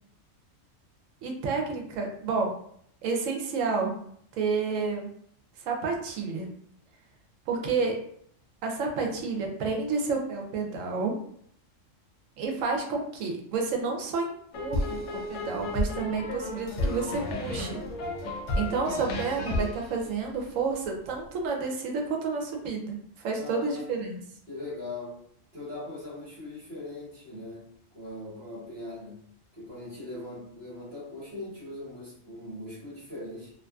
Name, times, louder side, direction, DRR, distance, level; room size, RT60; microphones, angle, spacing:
voice 1, 1.2-2.5 3.0-4.0 4.4-5.1 5.7-6.5 7.5-8.0 8.6-11.2 12.4-15.0 15.3-17.8 18.5-24.2, right 4 dB, 80° right, 1 dB, 1.0 m, -30 dB
sound 1, 14.5-20.9, left 1 dB, 70° left, 0.8 m, -32 dB
voice 2, 23.4-23.9 24.5-25.2 25.5-29.2 29.5-33.5, left 2 dB, 45° right, -11 dB, 1.3 m, -40 dB
2.5 x 2.5 x 2.2 m, 0.66 s
omnidirectional pair, 1.3 m